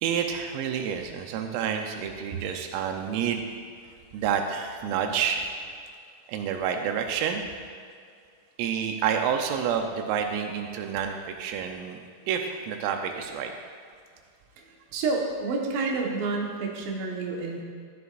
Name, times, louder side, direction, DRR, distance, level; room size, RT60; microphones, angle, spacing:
voice 1, 0.0-3.5 4.1-5.5 6.3-7.4 8.6-12.0 12.3-13.5 15.8-16.0, right 7 dB, 90° right, 4 dB, 3.5 m, -29 dB
voice 2, 14.9-17.6, right 3 dB, 70° right, -1 dB, 3.4 m, -29 dB
14.5 x 14.0 x 2.6 m, 2.2 s
omnidirectional pair, 5.8 m